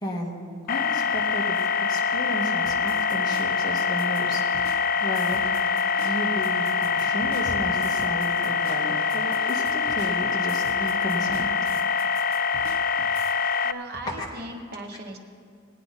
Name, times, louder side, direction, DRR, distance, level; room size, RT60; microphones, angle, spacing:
voice 1, 0.0-1.6 1.9-4.4 5.0-11.7 13.2-13.4 14.1-14.3, equal, 20° left, -3 dB, 1.8 m, -33 dB
sound 1, 0.7-13.7, left 6 dB, 45° left, 0.3 m, -25 dB
sound 2, 2.7-13.3, right 2 dB, 75° right, 1.0 m, -46 dB
voice 2, 13.6-15.2, right 1 dB, 50° right, 2 dB, 1.3 m, -38 dB
20.0 x 9.0 x 4.2 m, 2.2 s
head